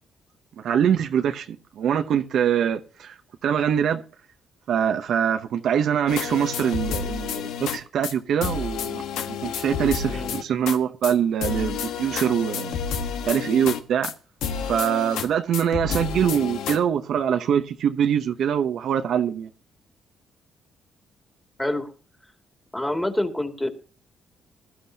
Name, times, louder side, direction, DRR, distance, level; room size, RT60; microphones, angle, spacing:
voice 1, 0.6-3.2 3.4-4.0 4.7-9.0 9.3-12.8 13.3-14.1 14.6-19.5, right 8 dB, 70° right, 0.9 m, -24 dB
sound 1, 6.1-7.8 8.0-8.1 8.4-10.8 11.0-11.1 11.4-14.1 14.4-15.3 15.5-16.8, left 7 dB, 90° left, 1.2 m, -30 dB
voice 2, 10.1-10.4 21.6-21.9 22.7-23.7, left 1 dB, 10° left, 2.4 m, -26 dB
20.0 x 13.0 x 2.8 m
cardioid pair, 90°, 0 cm